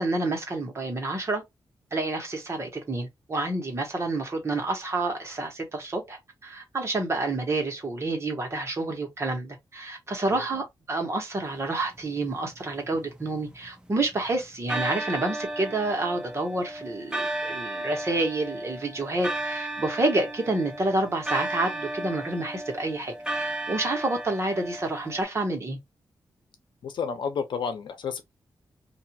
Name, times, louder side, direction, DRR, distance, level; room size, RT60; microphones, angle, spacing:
voice 1, 0.0-1.4 1.9-25.8, right 2 dB, 35° right, 1.3 m, -29 dB
sound 1, 12.6-14.1 14.7-25.2, right 1 dB, 10° right, 0.6 m, -34 dB
voice 2, 26.8-28.2, left 6 dB, 80° left, 0.7 m, -31 dB
2.6 x 2.5 x 2.9 m
wide cardioid pair, 110°, 8 cm